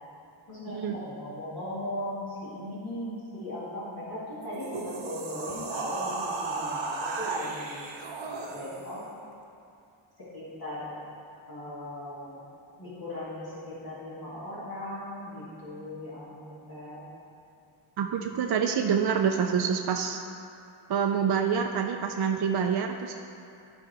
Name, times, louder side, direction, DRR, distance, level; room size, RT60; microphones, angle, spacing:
voice 1, 0.5-7.9 8.5-9.0 10.2-11.0 11.5-12.4 12.8-17.0, left 1 dB, 50° left, -10 dB, 1.9 m, -38 dB
sound 1, 4.4-9.0, right 3 dB, 70° right, 0.9 m, -34 dB
voice 2, 18.0-20.2 20.9-23.2, right 7 dB, 55° right, 3 dB, 0.5 m, -27 dB
12.5 x 4.8 x 3.3 m, 2.6 s
wide cardioid pair, 115°, 47 cm